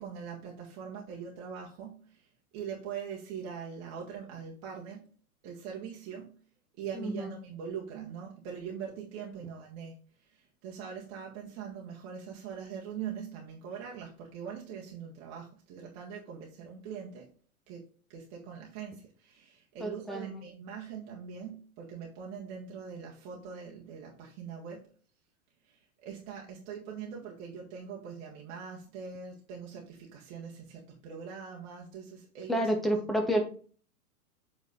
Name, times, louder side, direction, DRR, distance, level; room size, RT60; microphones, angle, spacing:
voice 1, 0.0-2.3 2.5-5.1 5.4-6.4 6.8-17.3 17.7-24.9 25.6-33.0, right 7 dB, 35° right, -2 dB, 1.6 m, -42 dB
voice 2, 6.9-7.3 19.8-20.4 32.5-33.4, right 1 dB, ahead, 3 dB, 0.4 m, -29 dB
7.6 x 3.9 x 4.1 m, 0.41 s
figure-of-eight pair, 105°, 44 cm